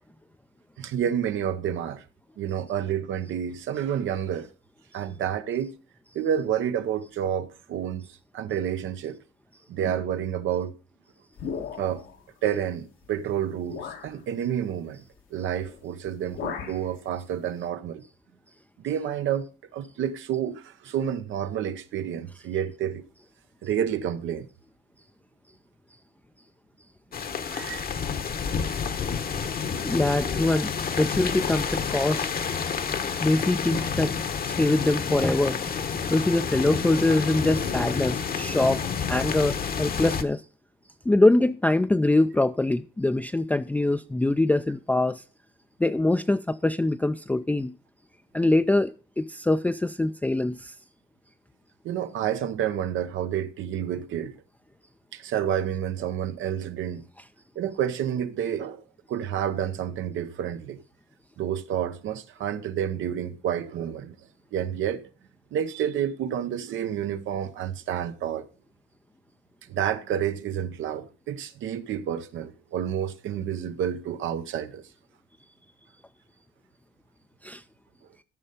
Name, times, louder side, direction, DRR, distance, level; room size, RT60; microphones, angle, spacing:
voice 1, 0.8-2.0 2.4-4.5 4.9-5.7 6.1-8.1 8.3-9.2 9.7-10.8 11.8-12.0 12.4-15.0 15.3-18.0 18.8-19.5 19.7-23.0 23.6-24.5 27.4-27.9 51.8-54.4 55.1-57.0 57.5-58.8 59.1-60.8 61.4-64.2 64.5-65.0 65.5-68.5 69.7-74.8, right 9 dB, 80° right, 0.9 m, -29 dB
sound 1, 11.4-12.2 13.0-13.1 13.7-14.1 15.5-15.8 16.1-16.9, left 7 dB, 85° left, 1.7 m, -36 dB
sound 2, 27.1-40.2, left 6 dB, 50° left, 1.0 m, -29 dB
voice 2, 29.8-32.3 33.2-34.1 34.6-35.6 36.1-40.4 41.1-45.2 45.8-47.8 48.3-50.7 77.4-77.6, left 2 dB, 10° left, 0.4 m, -24 dB
13.5 x 5.5 x 5.1 m
cardioid pair, 90°, 20 cm